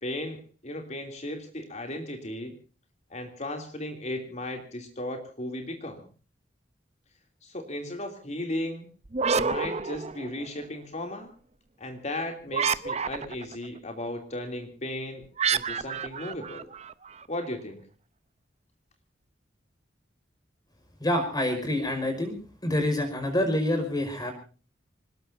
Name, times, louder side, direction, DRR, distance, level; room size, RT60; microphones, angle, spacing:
voice 1, 0.0-2.5 3.1-6.0 7.4-8.9 9.3-11.3 11.8-15.2 15.5-16.7 17.3-17.8, left 1 dB, 40° left, 4 dB, 3.0 m, -35 dB
sound 1, 9.1-10.6 12.5-13.6 15.4-17.2, right 5 dB, 35° right, 0.8 m, -29 dB
voice 2, 21.0-22.3 22.6-24.3, left 1 dB, 20° left, 7 dB, 5.4 m, -27 dB
26.5 x 20.0 x 2.7 m, 0.36 s
head